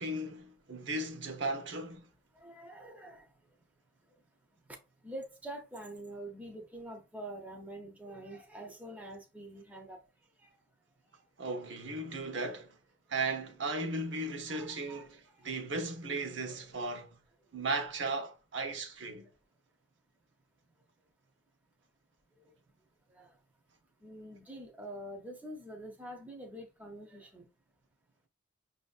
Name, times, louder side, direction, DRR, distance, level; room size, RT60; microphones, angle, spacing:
voice 1, 0.0-2.1 11.4-12.8 13.1-17.1 17.5-19.3, right 2 dB, 70° right, 0.9 m, -36 dB
voice 2, 2.4-3.3 5.0-10.0 10.4-10.5 14.5-15.1 16.5-16.6 23.1-23.3 24.0-27.5, right 1 dB, 10° right, 0.6 m, -46 dB
5.9 x 2.6 x 2.4 m
head